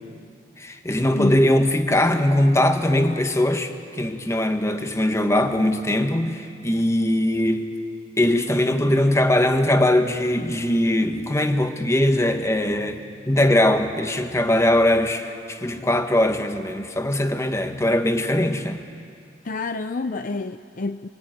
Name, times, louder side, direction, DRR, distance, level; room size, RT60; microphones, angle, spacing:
voice 1, 0.6-7.7 8.2-18.8, left 1 dB, 15° left, 6 dB, 1.4 m, -21 dB
voice 2, 19.4-21.1, left 3 dB, 50° left, 10 dB, 0.5 m, -28 dB
23.5 x 22.5 x 9.2 m, 2.5 s
head